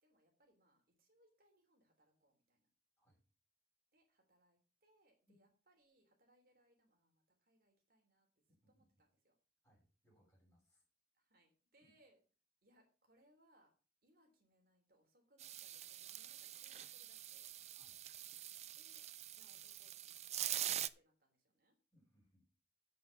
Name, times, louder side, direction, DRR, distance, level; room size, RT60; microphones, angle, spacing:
voice 1, 0.0-2.7 3.9-9.3 11.1-12.2 12.6-13.7 14.0-17.5 18.7-21.7, right 1 dB, 55° right, 2 dB, 3.2 m, -74 dB
voice 2, 8.5-9.0 9.6-10.8 11.8-11.9 17.7-18.0 21.9-22.5, equal, 15° left, -4 dB, 6.5 m, -74 dB
sound 1, 15.4-20.9, right 12 dB, 40° right, 0.5 m, -45 dB
8.0 x 6.8 x 6.9 m, 0.36 s
head